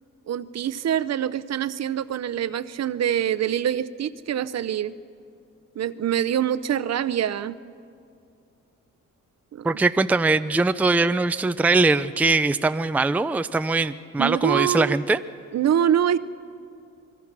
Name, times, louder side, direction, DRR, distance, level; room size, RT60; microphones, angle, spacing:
voice 1, 0.3-4.9 5.8-7.6 9.5-9.7 14.2-15.0 15.5-16.2, right 10 dB, 55° right, 14 dB, 0.7 m, -25 dB
voice 2, 9.6-15.2, right 3 dB, 5° right, 11 dB, 0.4 m, -21 dB
27.5 x 21.0 x 6.0 m, 2.5 s
cardioid pair, 100°, 31 cm